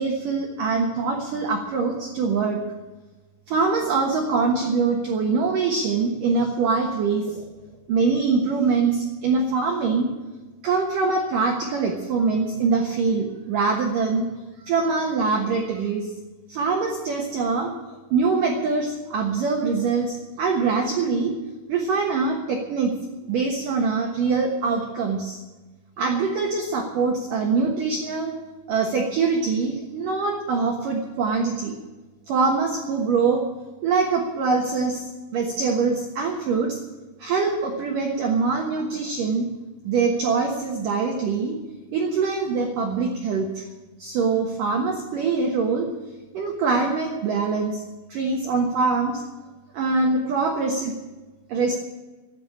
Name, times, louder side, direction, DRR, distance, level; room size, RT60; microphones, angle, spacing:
voice 1, 0.0-2.6 3.5-7.5 7.9-10.1 10.6-14.3 14.6-16.1 16.5-17.7 18.1-21.3 21.7-23.0 23.3-25.4 26.0-28.3 28.7-31.8 32.3-33.5 33.8-36.8 37.2-39.5 39.8-41.6 41.9-43.7 44.0-45.9 46.3-47.8 48.1-49.2 49.7-50.9 51.5-51.7, right 4 dB, 75° right, 0 dB, 2.0 m, -23 dB
14.0 x 9.9 x 8.6 m, 1.2 s
omnidirectional pair, 5.9 m